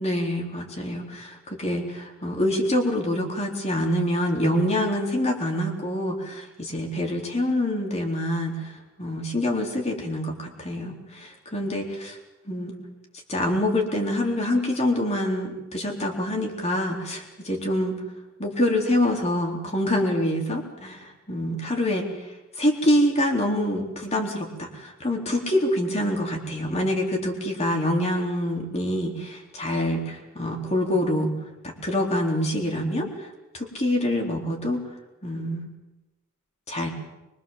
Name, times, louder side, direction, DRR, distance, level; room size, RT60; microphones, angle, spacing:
voice 1, 0.0-8.7 9.0-12.2 12.5-12.8 13.3-18.0 18.4-22.1 22.6-31.3 31.6-33.3 33.5-34.8 35.2-35.7 36.7-36.9, left 1 dB, 30° left, 1 dB, 3.7 m, -26 dB
24.0 x 22.5 x 7.4 m, 1.0 s
head